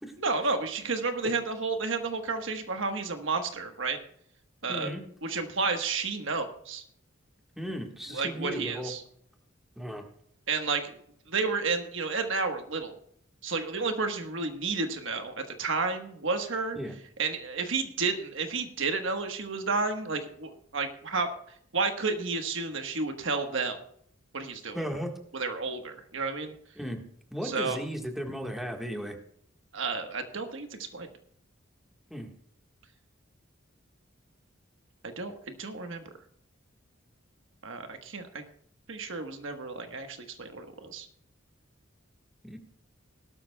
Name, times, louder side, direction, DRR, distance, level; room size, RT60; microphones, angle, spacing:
voice 1, 0.2-4.0 4.6-4.9 5.2-6.8 8.1-9.0 10.5-11.0 11.3-13.0 13.4-16.8 17.2-21.3 21.7-23.8 24.3-24.8 25.3-26.5 27.4-27.8 29.7-31.1 35.0-36.0 37.6-38.4 38.9-41.1, right 4 dB, 70° right, 6 dB, 1.3 m, -31 dB
voice 2, 4.7-5.0 7.5-8.9 9.8-10.0 16.7-17.0 24.7-25.1 26.8-27.0 27.3-29.2 32.1-32.3 42.4-42.6, equal, ahead, 2 dB, 1.5 m, -35 dB
18.5 x 12.5 x 2.3 m, 0.66 s
head